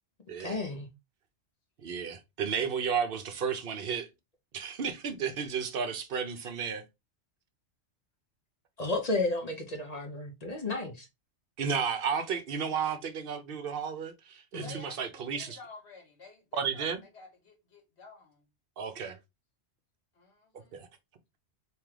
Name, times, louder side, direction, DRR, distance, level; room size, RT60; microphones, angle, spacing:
voice 1, 0.4-0.9 8.8-11.1 14.5-14.8, left 2 dB, 40° left, 0.8 m, -32 dB
voice 2, 1.8-4.1 4.5-6.8 11.6-15.6 16.5-17.0 18.8-19.2 20.7-20.9, right 6 dB, 55° right, 0.8 m, -33 dB
voice 3, 14.6-18.4 20.1-20.8, left 4 dB, 65° left, 1.5 m, -51 dB
3.6 x 2.9 x 3.2 m
omnidirectional pair, 1.2 m